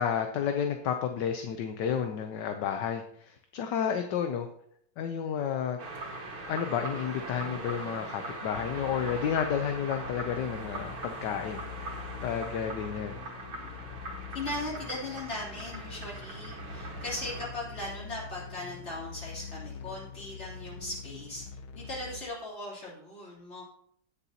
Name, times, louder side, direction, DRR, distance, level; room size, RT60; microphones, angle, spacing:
voice 1, 0.0-4.5 5.0-5.8 6.5-11.6 12.2-13.2, left 8 dB, 70° left, 6 dB, 1.3 m, -31 dB
sound 1, 5.8-17.5, right 2 dB, 80° right, 2.6 m, -41 dB
Synth - Helicopter, 8.5-22.2, left 6 dB, 90° left, 1.7 m, -44 dB
voice 2, 14.3-21.4 21.7-23.6, left 1 dB, 35° left, -5 dB, 3.5 m, -38 dB
16.5 x 6.9 x 2.8 m, 0.67 s
omnidirectional pair, 2.2 m